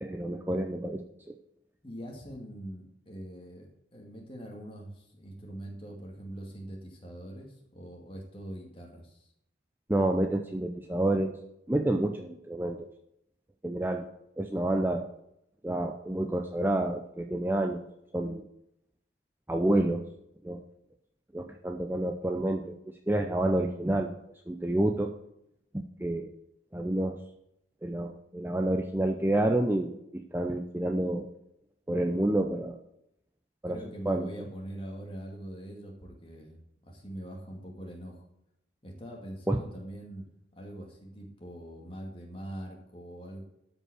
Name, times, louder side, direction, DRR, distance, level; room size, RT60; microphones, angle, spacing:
voice 1, 0.0-1.0 1.3-1.4 9.9-11.4 11.7-12.9 13.6-14.1 14.4-15.1 15.6-17.8 18.1-18.5 19.5-20.0 20.4-20.6 21.3-22.8 23.1-24.1 24.5-25.1 25.7-26.3 26.7-27.2 27.8-31.3 31.9-32.8 33.6-33.8 34.1-34.3 39.5-39.6, right 1 dB, 10° right, 3 dB, 0.5 m, -28 dB
voice 2, 1.8-9.3 33.7-38.2 38.8-40.3 40.6-43.4, right 1 dB, 25° left, 0 dB, 2.3 m, -43 dB
12.5 x 5.3 x 6.4 m, 0.79 s
head